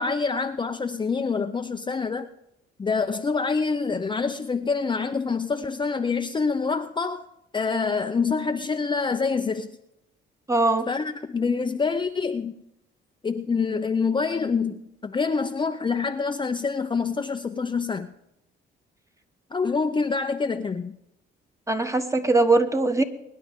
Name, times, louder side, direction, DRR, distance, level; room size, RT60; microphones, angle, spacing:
voice 1, 0.0-2.3 2.8-7.2 7.5-9.8 10.9-12.6 13.2-18.1 19.5-21.0, left 4 dB, 25° left, 0.6 m, -26 dB
voice 2, 10.5-10.9 21.7-23.0, right 2 dB, 15° right, 1.4 m, -21 dB
23.0 x 10.5 x 3.7 m
cardioid pair, 90°, 20 cm